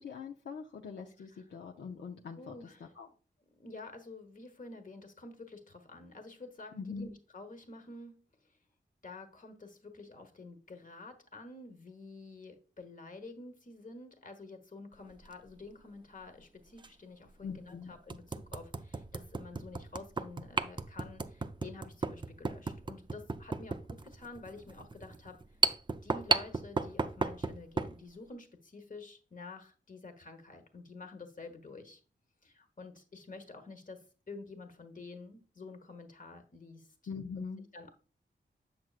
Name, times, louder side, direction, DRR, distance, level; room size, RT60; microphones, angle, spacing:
voice 1, 0.0-2.5 3.0-3.1 6.8-7.1 17.4-17.9 37.1-37.6, left 5 dB, 75° left, 0 dB, 0.6 m, -42 dB
voice 2, 2.3-2.9 3.6-8.2 8.5-8.6 9.0-25.4 26.0-32.0 32.4-36.9 37.7-37.9, left 3 dB, 45° left, 6 dB, 1.3 m, -49 dB
sound 1, 15.1-15.3 16.8-16.9 17.5-17.6 18.1-28.0, right 3 dB, 25° right, 0.4 m, -34 dB
7.4 x 6.1 x 2.4 m, 0.37 s
cardioid pair, 55°, 19 cm